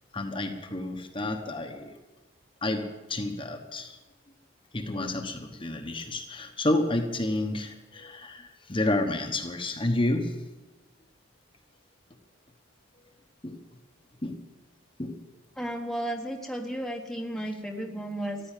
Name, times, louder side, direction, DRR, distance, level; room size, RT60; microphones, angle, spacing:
voice 1, 0.1-1.9 2.6-4.0 4.7-10.4 13.4-13.6 14.2-14.4 15.0-15.2, left 2 dB, 25° left, 4 dB, 1.2 m, -30 dB
voice 2, 15.6-18.4, right 1 dB, ahead, 1 dB, 1.1 m, -33 dB
14.5 x 10.0 x 9.0 m, 1.1 s
head